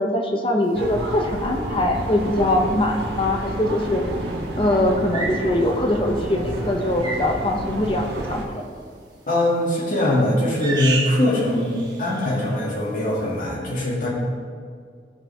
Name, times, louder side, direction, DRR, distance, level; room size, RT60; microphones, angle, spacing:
voice 1, 0.0-4.0 4.6-8.6, left 1 dB, 30° left, 3 dB, 0.7 m, -22 dB
sound 1, 0.7-8.5, right 1 dB, 70° right, 1.4 m, -30 dB
sound 2, 2.9-3.1 5.1-5.5 7.0-7.3 9.4-9.8 10.6-11.3 11.5-12.3, right 3 dB, 25° right, 1.3 m, -30 dB
voice 2, 9.3-14.1, left 1 dB, 45° left, -5 dB, 2.5 m, -22 dB
14.5 x 5.6 x 3.6 m, 2.2 s
head